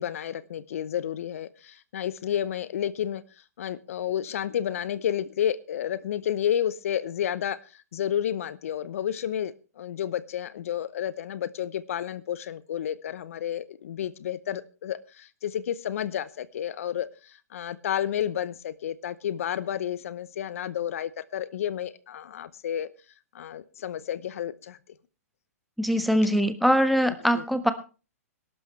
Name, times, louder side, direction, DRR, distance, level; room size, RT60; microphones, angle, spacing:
voice 1, 0.0-3.2 3.6-22.9 23.3-24.8 27.3-27.4, left 10 dB, 60° left, 17 dB, 0.8 m, -31 dB
voice 2, 25.8-27.7, equal, ahead, 9 dB, 1.4 m, -22 dB
20.5 x 12.0 x 3.2 m, 0.33 s
hypercardioid pair, 125°, 8 cm